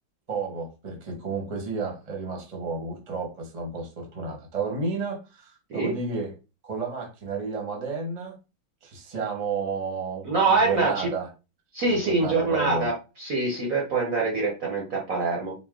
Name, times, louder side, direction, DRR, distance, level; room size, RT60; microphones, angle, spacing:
voice 1, 0.3-6.3 6.6-8.4 8.8-11.3 11.9-12.9, right 4 dB, 30° right, 1 dB, 0.8 m, -32 dB
voice 2, 10.2-11.1 11.7-12.9 13.2-15.5, right 3 dB, 55° right, -1 dB, 1.0 m, -24 dB
4.3 x 2.2 x 3.6 m, 0.30 s
omnidirectional pair, 2.2 m